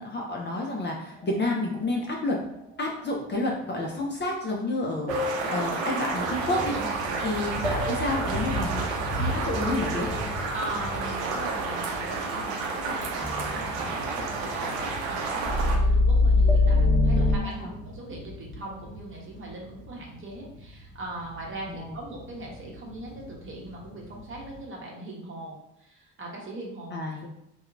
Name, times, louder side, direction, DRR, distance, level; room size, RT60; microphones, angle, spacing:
voice 1, 0.0-2.4 2.8-6.8 7.2-10.1 17.2-17.3 17.6-17.7 21.7-22.0 26.9-27.3, left 2 dB, 25° left, -1 dB, 0.5 m, -30 dB
sound 1, 1.1-2.7 3.3-3.8 4.3-4.4 5.1-12.7 13.1-14.8 15.2-17.4, left 2 dB, 5° left, 0.9 m, -27 dB
sound 2, 5.1-15.8, right 4 dB, 70° right, 0.6 m, -31 dB
sound 3, 6.1-24.6, equal, 50° left, 0.9 m, -39 dB
voice 2, 6.7-7.3 10.5-27.0, right 1 dB, 30° right, -2 dB, 0.9 m, -40 dB
2.7 x 2.2 x 2.5 m, 0.81 s
hypercardioid pair, 55°, 40 cm